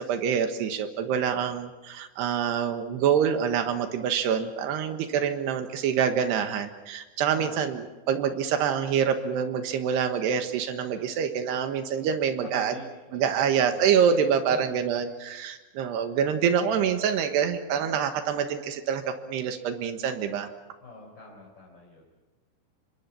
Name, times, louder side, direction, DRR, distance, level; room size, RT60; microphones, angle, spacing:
voice 1, 0.0-12.8 13.1-20.5, right 7 dB, 85° right, 7 dB, 3.5 m, -26 dB
voice 2, 1.1-1.5 7.3-7.8 12.4-14.0 14.5-14.9 20.8-22.0, left 2 dB, 30° left, -3 dB, 4.6 m, -45 dB
27.0 x 23.0 x 5.9 m, 1.1 s
omnidirectional pair, 4.7 m